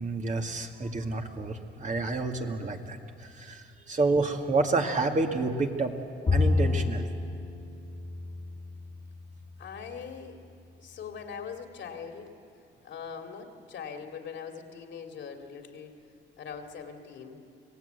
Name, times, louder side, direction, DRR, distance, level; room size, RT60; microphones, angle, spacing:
voice 1, 0.0-3.0 3.3-5.9 6.3-7.1, right 3 dB, 40° right, 3 dB, 2.2 m, -29 dB
Bowed string instrument, 6.3-9.7, left 3 dB, 30° left, 2.0 m, -29 dB
voice 2, 9.6-10.4 10.8-12.3 12.8-16.0 16.4-17.4, left 6 dB, 65° left, 3 dB, 2.6 m, -41 dB
26.0 x 17.5 x 8.2 m, 2.5 s
cardioid pair, 90°, 20 cm